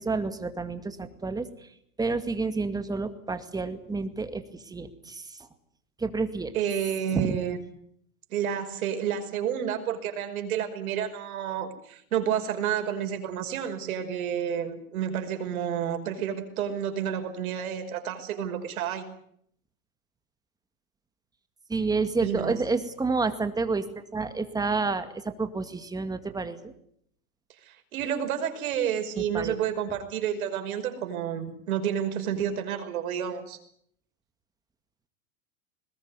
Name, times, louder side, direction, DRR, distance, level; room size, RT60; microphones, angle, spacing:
voice 1, 0.0-1.5 2.0-5.5 6.0-6.5 7.1-7.4 21.7-26.7 29.2-29.6, right 4 dB, 10° right, 9 dB, 2.1 m, -29 dB
voice 2, 6.5-7.6 8.3-19.1 22.2-22.5 27.6-33.6, right 9 dB, 75° right, 6 dB, 5.5 m, -30 dB
21.0 x 20.5 x 9.7 m, 0.68 s
supercardioid pair, 135°, 43 cm